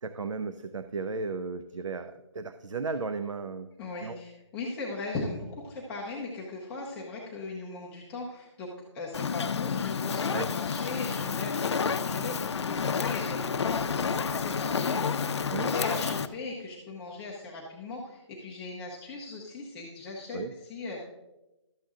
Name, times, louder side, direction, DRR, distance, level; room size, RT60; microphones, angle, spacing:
voice 1, 0.0-3.7 4.0-4.2 10.3-10.5 15.5-15.7 20.3-20.6, right 4 dB, 85° right, 10 dB, 0.6 m, -35 dB
voice 2, 3.8-8.7 8.9-20.4 20.7-21.0, left 3 dB, 5° left, -4 dB, 0.5 m, -38 dB
Fire, 9.1-16.3, left 6 dB, 65° left, 0.5 m, -30 dB
12.0 x 7.5 x 3.6 m, 1.0 s
hypercardioid pair, 165°, 16 cm